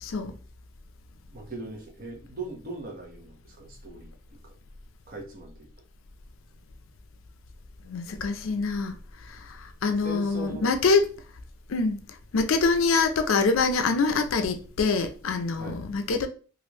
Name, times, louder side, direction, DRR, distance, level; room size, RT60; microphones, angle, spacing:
voice 1, 0.0-0.3 7.8-11.1 11.7-12.0 12.3-16.3, left 4 dB, 80° left, 0.5 m, -25 dB
voice 2, 1.3-4.5 5.1-5.7 10.0-10.7 15.6-15.8, right 2 dB, 45° right, 0.9 m, -40 dB
3.1 x 2.5 x 3.0 m
head